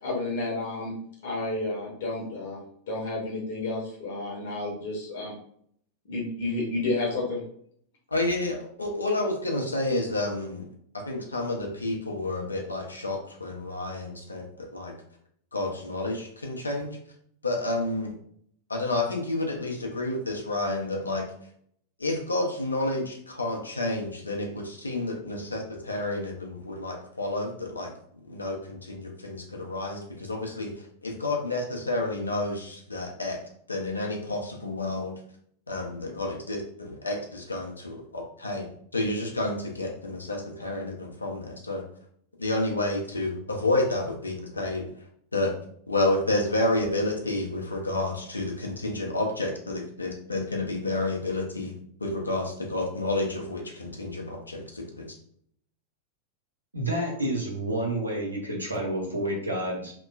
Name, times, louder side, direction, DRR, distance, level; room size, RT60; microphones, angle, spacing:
voice 1, 0.0-0.9 1.2-2.6 2.9-5.3 6.1-7.4, left 2 dB, 55° left, -3 dB, 0.9 m, -31 dB
voice 2, 8.1-10.6 11.1-14.4 14.7-14.9 15.5-17.0 17.4-18.1 18.7-21.3 22.0-27.9 28.3-30.7 31.0-33.4 33.7-35.1 35.7-38.7 38.9-41.8 42.4-44.9 45.3-45.5 45.9-51.7 52.0-55.1, left 2 dB, 80° left, 1 dB, 0.6 m, -30 dB
voice 3, 56.7-59.9, right 1 dB, 80° right, -1 dB, 0.7 m, -29 dB
2.9 x 2.2 x 2.4 m, 0.64 s
figure-of-eight pair, 90°, 0 cm